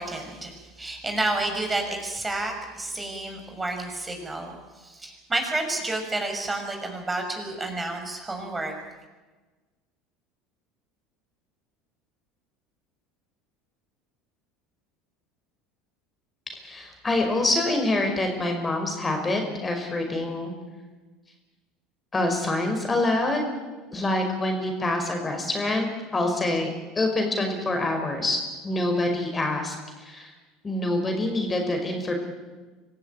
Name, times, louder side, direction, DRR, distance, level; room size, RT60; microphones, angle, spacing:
voice 1, 0.0-8.7, right 2 dB, 15° right, 3 dB, 6.1 m, -30 dB
voice 2, 16.5-20.5 22.1-23.4 23.9-25.9 26.1-26.7 27.0-30.3 30.6-32.1, left 2 dB, 20° left, 4 dB, 5.3 m, -26 dB
25.5 x 15.0 x 9.2 m, 1.3 s
hypercardioid pair, 75°, 0 cm